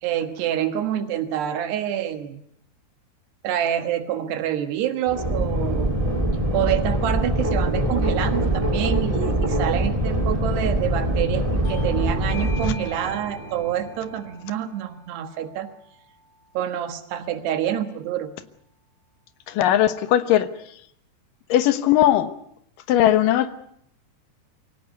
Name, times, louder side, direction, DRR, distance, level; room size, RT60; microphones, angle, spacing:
voice 1, 0.0-2.4 3.4-6.0 6.5-15.7 16.5-18.3, right 10 dB, 80° right, 9 dB, 3.5 m, -27 dB
sound 1, 5.1-12.7, right 1 dB, 15° right, 1.6 m, -23 dB
sound 2, 7.0-14.6, right 2 dB, 65° right, 5.9 m, -39 dB
Bell / Doorbell, 11.6-16.7, left 2 dB, 45° left, 5.0 m, -44 dB
voice 2, 19.5-20.5 21.5-22.3 22.9-23.5, left 12 dB, 65° left, 12 dB, 2.5 m, -18 dB
23.5 x 17.5 x 9.4 m, 0.70 s
omnidirectional pair, 4.7 m